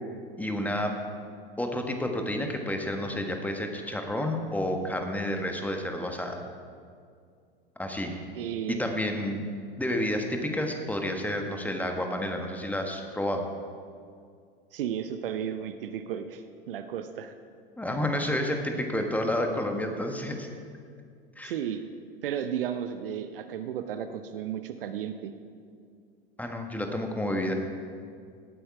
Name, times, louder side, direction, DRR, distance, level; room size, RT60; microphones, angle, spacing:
voice 1, 0.4-0.9 1.6-6.4 7.8-8.2 8.7-9.4 9.8-13.5 17.8-20.5 21.4-21.5 26.4-27.5, left 1 dB, 5° left, 3 dB, 1.4 m, -30 dB
voice 2, 8.3-8.8 11.4-11.6 14.7-17.3 21.4-21.8 22.2-25.3, right 9 dB, 65° right, 9 dB, 0.8 m, -34 dB
17.5 x 8.7 x 4.8 m, 2.2 s
figure-of-eight pair, 85°, 30 cm